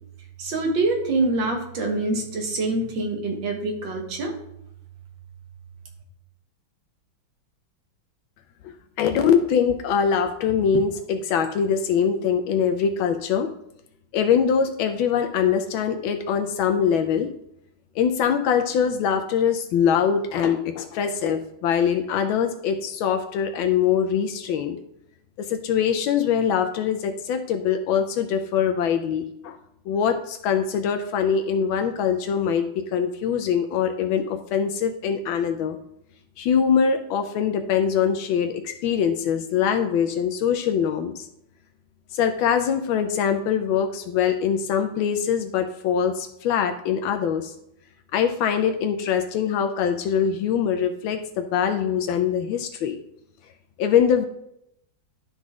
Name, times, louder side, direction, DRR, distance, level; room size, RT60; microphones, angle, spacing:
voice 1, 0.4-4.3, right 2 dB, 70° right, 2 dB, 2.0 m, -25 dB
voice 2, 9.0-13.5 14.1-17.3 18.0-24.8 25.4-29.6 29.9-35.8 36.4-41.3 42.1-47.5 48.1-53.0 53.8-54.3, left 7 dB, 80° left, 6 dB, 1.4 m, -23 dB
12.0 x 4.0 x 3.6 m, 0.78 s
omnidirectional pair, 2.2 m